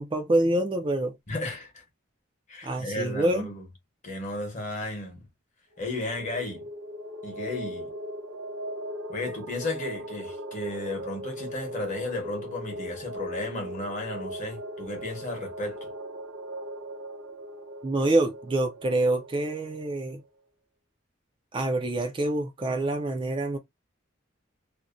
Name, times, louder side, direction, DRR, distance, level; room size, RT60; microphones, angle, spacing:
voice 1, 0.0-1.1 2.6-3.5 17.8-20.2 21.5-23.6, right 1 dB, 25° right, 0.3 m, -26 dB
voice 2, 1.3-1.8 2.5-3.7 4.0-5.2 5.8-6.7 7.2-7.9 9.1-15.9, left 2 dB, 35° left, 0.9 m, -34 dB
sound 1, 5.7-20.1, equal, 85° right, 0.7 m, -39 dB
2.6 x 2.1 x 2.3 m
head